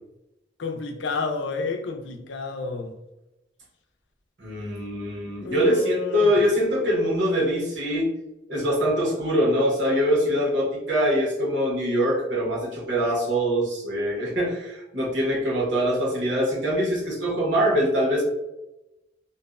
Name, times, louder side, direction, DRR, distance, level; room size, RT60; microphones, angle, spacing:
voice 1, 0.6-2.9 5.4-6.3, left 4 dB, 85° left, 0.4 m, -30 dB
voice 2, 4.4-8.1 8.5-18.2, equal, 90° right, 1.0 m, -23 dB
2.5 x 2.1 x 2.3 m
head